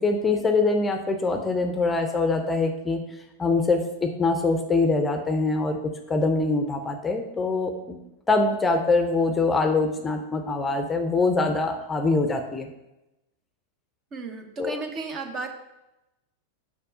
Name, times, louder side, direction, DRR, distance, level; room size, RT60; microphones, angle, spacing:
voice 1, 0.0-3.0 3.4-8.0 8.3-12.7 14.6-14.8, left 3 dB, 15° left, 5 dB, 0.7 m, -24 dB
voice 2, 14.1-15.5, right 3 dB, 30° right, 5 dB, 1.0 m, -34 dB
6.7 x 5.2 x 5.4 m, 0.95 s
figure-of-eight pair, 90°, 0 cm